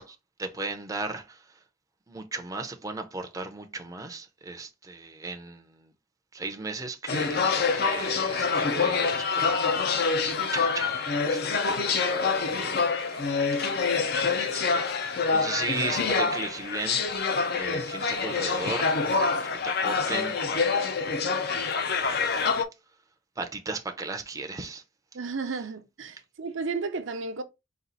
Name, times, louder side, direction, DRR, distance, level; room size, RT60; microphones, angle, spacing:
voice 1, 0.0-1.4 2.1-5.9 6.3-9.7 10.3-10.9 11.2-11.4 11.6-17.3 17.5-19.2 19.5-20.4 21.4-22.5 23.4-24.8, right 3 dB, 20° right, 0.5 m, -37 dB
sound 1, 7.1-22.6, left 4 dB, 55° left, 0.6 m, -26 dB
voice 2, 25.1-27.4, right 4 dB, 70° right, 0.6 m, -33 dB
4.1 x 2.4 x 3.9 m
head